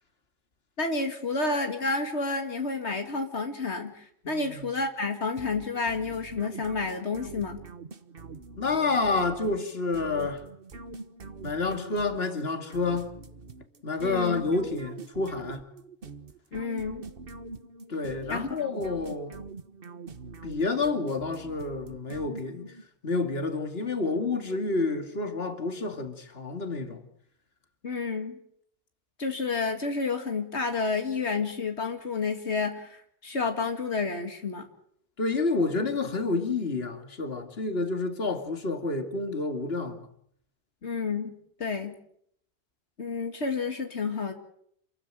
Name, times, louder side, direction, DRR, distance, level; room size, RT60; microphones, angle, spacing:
voice 1, 0.8-7.6 14.0-14.4 16.5-17.0 18.3-18.5 27.8-28.4 29.2-34.7 40.8-41.3 41.6-42.0 43.0-44.3, left 4 dB, 85° left, 2.5 m, -30 dB
voice 2, 4.2-4.7 8.6-10.4 11.4-13.1 13.8-15.7 17.9-19.3 20.4-22.7 23.0-27.0 35.2-40.1, left 3 dB, 65° left, 2.7 m, -29 dB
sound 1, 5.4-22.9, right 4 dB, 60° right, 1.6 m, -44 dB
28.0 x 15.0 x 9.1 m
omnidirectional pair, 1.1 m